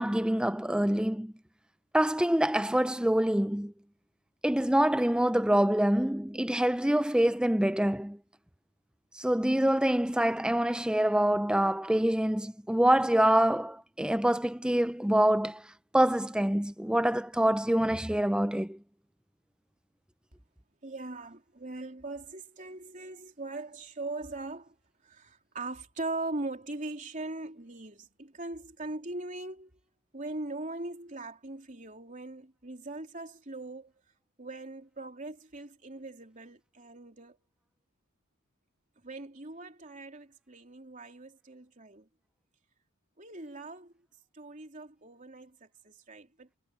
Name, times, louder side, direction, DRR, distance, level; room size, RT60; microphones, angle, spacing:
voice 1, 0.0-1.3 1.9-3.7 4.4-8.2 9.2-15.6 15.9-18.8, right 1 dB, 5° right, 0.5 m, -26 dB
voice 2, 20.8-24.7 25.0-29.7 30.1-33.9 34.4-37.4 39.0-42.1 43.2-43.9 44.3-46.6, right 2 dB, 35° right, 3.4 m, -40 dB
head